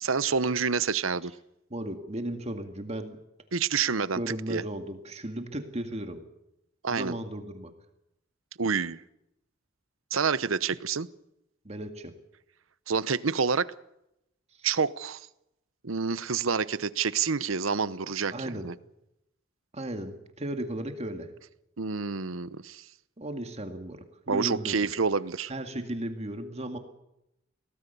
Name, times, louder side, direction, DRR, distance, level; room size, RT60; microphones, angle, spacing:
voice 1, 0.0-1.3 3.5-4.2 4.5-4.6 6.8-7.1 8.6-9.0 10.1-11.1 12.9-13.7 14.6-15.3 15.8-18.7 21.8-22.8 24.3-25.5, right 5 dB, 85° right, 0.9 m, -28 dB
voice 2, 1.7-3.2 4.1-6.2 6.9-7.7 11.6-12.1 14.6-14.7 18.3-18.7 19.7-21.3 23.2-24.9 25.5-26.8, right 1 dB, 35° right, 2.1 m, -35 dB
23.5 x 18.0 x 6.9 m
head